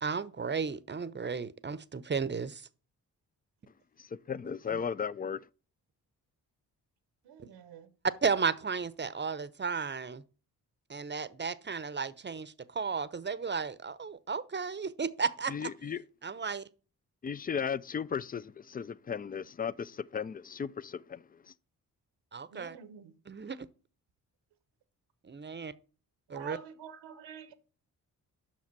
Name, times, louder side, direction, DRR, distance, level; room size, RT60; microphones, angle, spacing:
voice 1, 0.0-2.6 4.7-4.8 8.2-10.2 10.9-15.7 16.2-16.6 22.3-22.8 23.3-23.6 25.2-25.7 26.3-26.6, right 5 dB, 25° right, 0.7 m, -34 dB
voice 2, 4.0-5.4 15.5-16.0 17.2-21.2, left 7 dB, 20° left, 0.4 m, -35 dB
voice 3, 7.2-8.0 22.5-23.1 26.3-27.5, right 8 dB, 80° right, 1.1 m, -47 dB
7.4 x 5.8 x 6.0 m
supercardioid pair, 40°, 41 cm